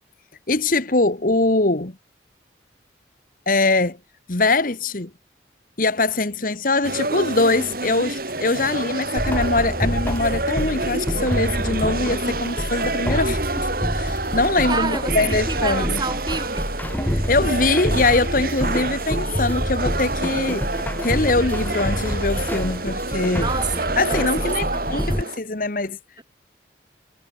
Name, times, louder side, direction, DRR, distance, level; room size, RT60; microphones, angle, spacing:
voice 1, 0.5-1.9 3.5-4.0 4.3-5.1 5.8-16.0 17.0-20.7 21.0-23.5 24.0-26.0, left 2 dB, 50° left, 1.5 m, -22 dB
sound 1, 6.8-25.4, right 2 dB, 50° right, 6.3 m, -28 dB
sound 2, 9.2-25.2, equal, 10° left, 2.1 m, -27 dB
voice 2, 14.7-16.7 23.3-25.3, right 4 dB, 25° right, 5.0 m, -29 dB
head